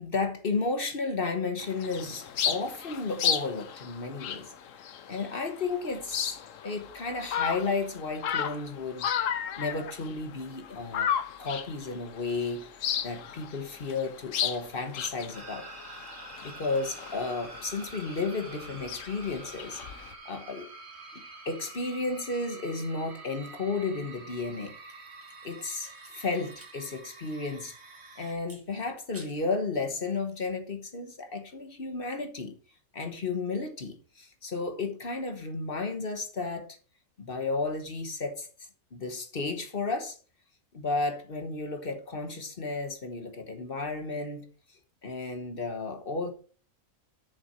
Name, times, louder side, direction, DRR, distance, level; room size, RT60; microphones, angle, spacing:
voice 1, 0.0-4.5 5.1-6.4 6.6-9.1 9.6-11.1 11.4-12.6 13.0-15.7 16.4-19.8 20.2-20.7 21.1-24.7 25.4-27.7 28.2-32.6 32.9-36.8 37.2-38.5 38.9-40.2 40.7-44.5 45.0-46.3, left 3 dB, 45° left, 1.2 m, -33 dB
sound 1, 1.6-20.1, left 9 dB, 70° left, 1.2 m, -35 dB
sound 2, 15.3-28.3, right 3 dB, 55° right, 1.6 m, -47 dB
sound 3, 24.8-26.8 27.1-27.2 28.4-29.6 30.0-30.4, right 1 dB, 10° right, 1.5 m, -54 dB
7.0 x 6.6 x 4.5 m
omnidirectional pair, 1.4 m